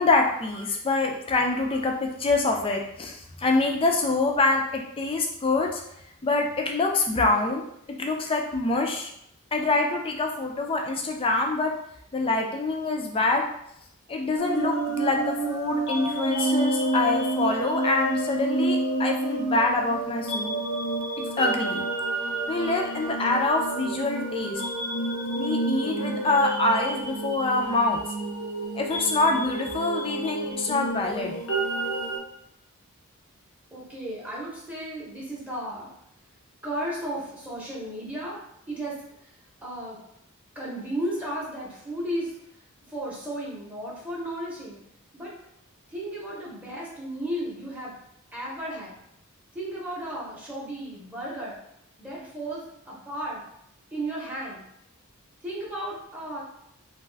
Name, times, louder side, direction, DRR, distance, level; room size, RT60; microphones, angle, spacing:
voice 1, 0.0-5.8 6.2-7.6 8.0-9.1 9.5-11.7 12.1-13.5 14.1-20.6 21.2-21.8 22.5-24.6 25.4-28.0 28.7-31.4, left 3 dB, 25° left, 2 dB, 0.4 m, -25 dB
sound 1, 14.4-32.2, right 2 dB, 60° left, 0.7 m, -29 dB
voice 2, 33.7-35.9 36.6-38.4 38.7-39.3 39.6-40.0 40.5-42.4 42.9-44.8 45.1-45.3 45.9-47.9 48.3-49.0 49.5-51.6 52.0-53.4 53.9-54.6 55.4-56.4, right 1 dB, 5° right, -6 dB, 0.7 m, -34 dB
2.5 x 2.3 x 3.2 m, 0.75 s
head